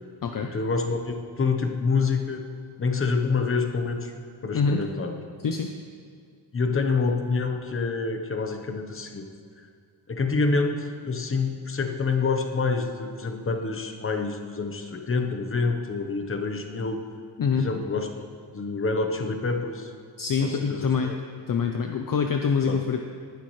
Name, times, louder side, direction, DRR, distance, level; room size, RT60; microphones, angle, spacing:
voice 1, 0.4-2.4 2.8-4.1 4.4-5.1 6.5-9.3 9.6-9.7 10.1-17.0 17.6-18.3 18.5-19.9 20.4-21.2 22.6-22.8, left 4 dB, 30° left, 5 dB, 1.0 m, -27 dB
voice 2, 20.2-21.2 21.5-23.0, left 5 dB, 45° left, 4 dB, 0.7 m, -25 dB
18.5 x 11.5 x 3.2 m, 2.3 s
wide cardioid pair, 160°, 46 cm